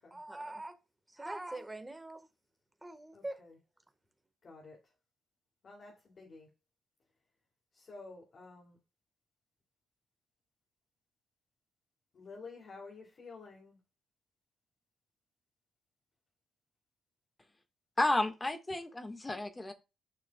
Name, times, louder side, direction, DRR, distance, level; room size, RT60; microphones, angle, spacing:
voice 1, 0.1-0.8 1.1-2.3 2.8-3.4, right 2 dB, 15° right, 1.5 m, -43 dB
voice 2, 3.1-3.6 4.4-4.9 5.6-6.5 7.7-8.8 12.1-13.8, left 3 dB, 50° left, 2.8 m, -51 dB
voice 3, 18.0-19.7, left 2 dB, 20° left, 1.7 m, -32 dB
10.0 x 6.3 x 2.3 m
hypercardioid pair, 45°, 0 cm